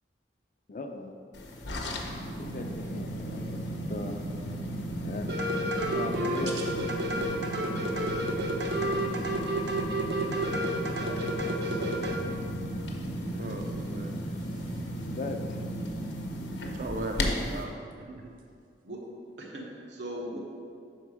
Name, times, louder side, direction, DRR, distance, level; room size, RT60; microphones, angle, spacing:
voice 1, 0.7-1.1 2.4-3.6 3.9-4.2 5.0-5.3 5.7-6.6 15.1-15.6, left 2 dB, 45° left, 5 dB, 0.4 m, -38 dB
sound 1, 1.3-17.6, equal, 80° left, 0.8 m, -35 dB
sound 2, 5.3-12.2, right 1 dB, 75° right, 0.7 m, -30 dB
voice 2, 11.5-12.0 18.8-19.1 19.4-20.4, equal, 90° right, -2 dB, 1.2 m, -40 dB
voice 3, 13.2-14.1 14.5-14.9 16.7-17.7 18.0-18.3, right 2 dB, 50° right, 3 dB, 0.4 m, -38 dB
6.0 x 4.6 x 4.7 m, 2.3 s
head